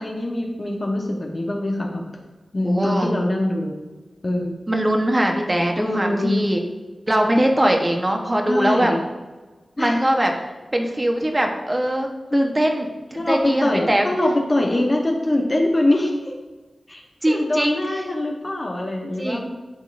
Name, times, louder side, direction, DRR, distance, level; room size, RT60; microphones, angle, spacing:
voice 1, 0.0-2.0 2.5-3.7 4.2-4.6 5.8-6.4 8.5-9.0 9.8-10.1 12.3-12.6 13.2-16.3 16.9-17.0 17.3-19.4, left 1 dB, 40° left, 0 dB, 1.0 m, -23 dB
voice 2, 2.6-3.1 4.7-6.6 7.1-8.9 9.8-10.3 10.7-12.9 13.3-14.1 17.2-17.8 19.2-19.5, right 1 dB, 25° right, 2 dB, 1.0 m, -21 dB
11.0 x 3.7 x 2.5 m, 1.2 s
cardioid pair, 50°, 0 cm